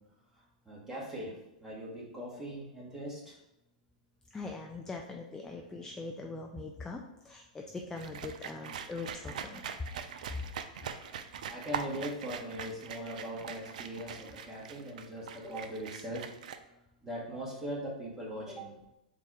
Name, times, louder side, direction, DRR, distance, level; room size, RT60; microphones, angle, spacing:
voice 1, 0.3-3.4 11.5-16.3 17.0-18.8, equal, 10° right, -5 dB, 1.4 m, -40 dB
voice 2, 4.3-7.0 7.2-9.6, left 3 dB, 10° left, 1 dB, 0.4 m, -41 dB
sound 1, 8.0-16.6, right 7 dB, 70° right, 0.4 m, -42 dB
4.1 x 2.4 x 4.6 m, 0.91 s
hypercardioid pair, 115°, 4 cm